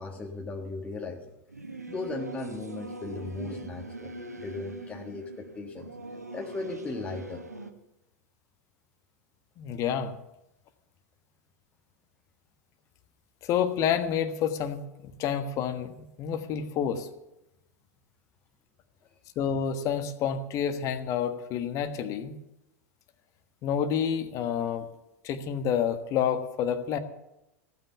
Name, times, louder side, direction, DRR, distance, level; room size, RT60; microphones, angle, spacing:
voice 1, 0.0-1.4 1.9-5.9 6.3-7.4, left 3 dB, 15° left, 1 dB, 1.5 m, -37 dB
Singing / Musical instrument, 1.5-7.7, right 2 dB, 90° right, 1.3 m, -41 dB
voice 2, 9.6-10.1 13.4-15.9 16.2-17.1 19.3-22.3 23.6-24.9 25.2-27.0, left 8 dB, 40° left, 9 dB, 1.3 m, -29 dB
15.5 x 9.1 x 7.0 m, 0.90 s
figure-of-eight pair, 90°, 8 cm